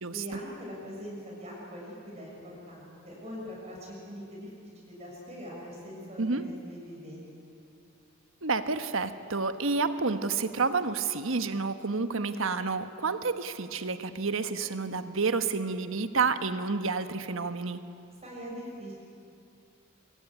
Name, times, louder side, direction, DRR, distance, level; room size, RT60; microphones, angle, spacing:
voice 1, 0.1-4.5 4.8-7.3 18.2-19.0, equal, 30° right, -3 dB, 6.5 m, -42 dB
voice 2, 8.4-17.8, right 4 dB, 80° right, 9 dB, 1.3 m, -29 dB
24.5 x 24.0 x 10.0 m, 2.5 s
head